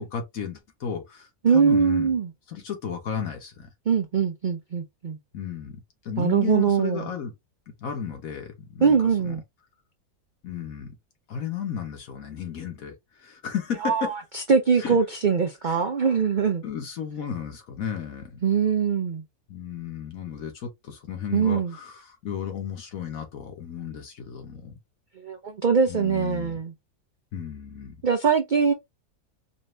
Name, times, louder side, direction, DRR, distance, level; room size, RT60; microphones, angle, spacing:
voice 1, 0.0-2.1 2.5-3.7 5.3-7.3 7.7-9.0 9.2-9.4 10.4-10.9 11.3-12.9 13.2-14.1 14.8-15.0 15.6-15.8 16.6-18.4 19.5-24.7 25.9-26.6 27.3-28.0, left 7 dB, 65° left, 1.5 m, -34 dB
voice 2, 1.4-2.3 3.9-5.2 6.2-7.1 8.8-9.4 13.8-16.6 18.4-19.2 21.3-21.7 25.2-26.7 28.0-28.7, right 6 dB, 70° right, 0.4 m, -22 dB
4.2 x 2.6 x 3.2 m
omnidirectional pair, 1.6 m